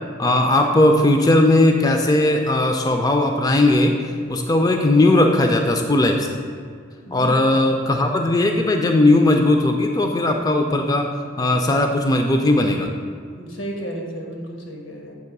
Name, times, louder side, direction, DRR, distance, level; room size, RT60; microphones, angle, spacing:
voice 1, 0.2-3.9 4.3-6.3 7.1-11.1 11.4-12.9, left 2 dB, 20° left, 3 dB, 0.4 m, -17 dB
voice 2, 7.1-7.6 13.4-15.1, right 1 dB, 90° left, 0 dB, 1.3 m, -33 dB
7.8 x 3.0 x 5.9 m, 2.1 s
head